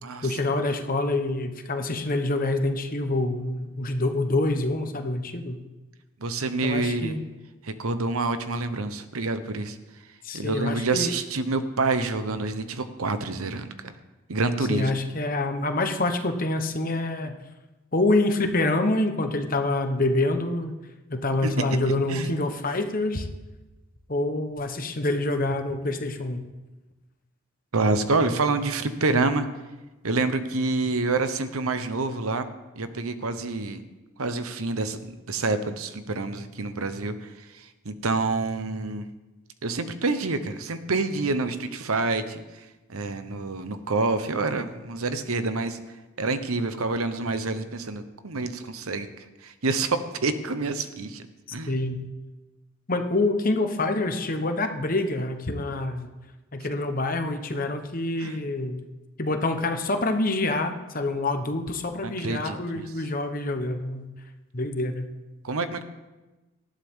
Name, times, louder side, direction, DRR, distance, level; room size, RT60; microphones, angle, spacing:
voice 1, 0.2-5.6 6.6-7.2 10.2-11.1 14.7-17.4 17.9-20.7 21.1-23.3 24.1-26.4 51.7-52.1 52.9-56.1 56.5-58.8 59.2-64.1 64.5-65.1, left 2 dB, 40° left, 6 dB, 1.1 m, -26 dB
voice 2, 6.2-7.2 7.6-9.8 10.3-13.9 14.3-14.9 21.4-21.5 22.1-22.3 27.7-29.5 30.0-32.5 32.7-33.8 34.2-39.1 39.6-42.4 42.9-45.8 46.2-49.1 49.4-51.3 51.5-51.7 58.2-58.4 62.0-62.9 65.4-65.8, right 3 dB, 75° right, 10 dB, 1.0 m, -27 dB
19.0 x 13.0 x 3.7 m, 1.1 s
head